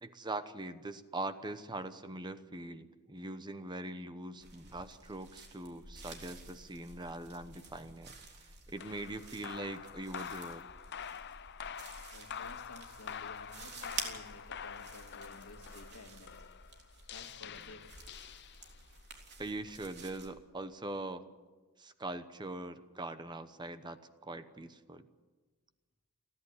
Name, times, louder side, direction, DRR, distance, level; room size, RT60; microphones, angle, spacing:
voice 1, 0.0-8.1 8.7-10.6 19.4-21.2 21.8-25.1, right 2 dB, 20° right, 11 dB, 0.9 m, -42 dB
sound 1, 4.4-20.3, right 4 dB, 50° right, 3.5 m, -50 dB
sound 2, 8.8-18.9, left 7 dB, 50° left, 0.7 m, -46 dB
voice 2, 12.1-16.8 17.1-18.1, left 2 dB, 75° left, 5 dB, 2.2 m, -53 dB
29.5 x 11.0 x 9.8 m, 1.3 s
head